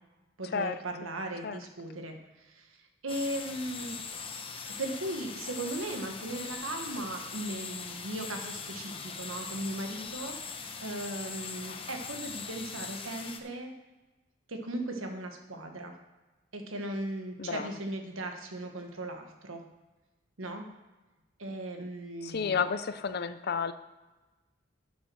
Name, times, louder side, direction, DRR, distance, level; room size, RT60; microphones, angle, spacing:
voice 1, 0.4-2.7 3.0-4.0 4.6-13.7 14.5-15.9 16.5-19.6 20.4-20.7 21.4-22.6, right 1 dB, 85° right, 4 dB, 1.5 m, -37 dB
sound 1, 3.1-13.4, left 5 dB, 25° left, 0.9 m, -41 dB
voice 2, 17.4-17.7 22.2-23.7, left 6 dB, 50° left, 11 dB, 0.5 m, -31 dB
10.5 x 6.3 x 6.2 m, 1.1 s
head